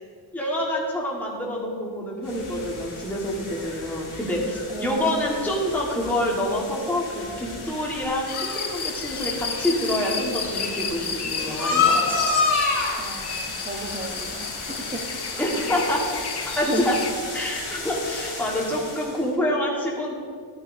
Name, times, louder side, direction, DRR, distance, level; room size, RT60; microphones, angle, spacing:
voice 1, 0.3-12.0 15.4-16.0 16.6-16.9 17.3-20.1, left 1 dB, 5° left, -4 dB, 1.4 m, -27 dB
sound 1, 2.2-19.2, left 4 dB, 75° left, 1.9 m, -30 dB
voice 2, 4.7-5.5 13.0-15.0 16.7-16.9, right 2 dB, 15° right, 3 dB, 0.9 m, -33 dB
sound 2, 8.3-17.1, left 5 dB, 55° left, 0.7 m, -32 dB
10.5 x 9.2 x 2.6 m, 2.1 s
wide cardioid pair, 75°, 49 cm